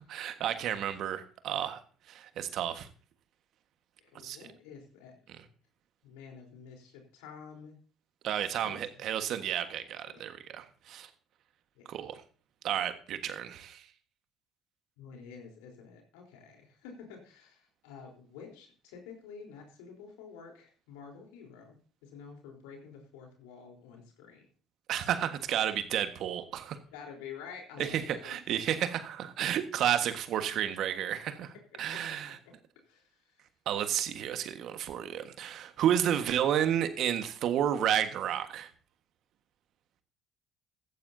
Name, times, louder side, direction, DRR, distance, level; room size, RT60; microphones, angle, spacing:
voice 1, 0.1-1.8 2.1-2.9 4.2-4.4 8.2-11.1 11.9-12.2 12.6-13.8 24.9-26.8 27.8-32.4 33.7-38.7, right 10 dB, 60° right, 9 dB, 1.5 m, -31 dB
voice 2, 4.0-5.1 6.0-7.8 8.6-9.0 10.1-10.3 11.8-12.0 15.0-21.8 22.0-24.5 26.9-28.4 31.7-32.2 32.5-32.6 32.9-33.1, left 6 dB, 75° left, 2 dB, 3.8 m, -49 dB
15.0 x 14.5 x 2.7 m, 0.40 s
hypercardioid pair, 55°, 0 cm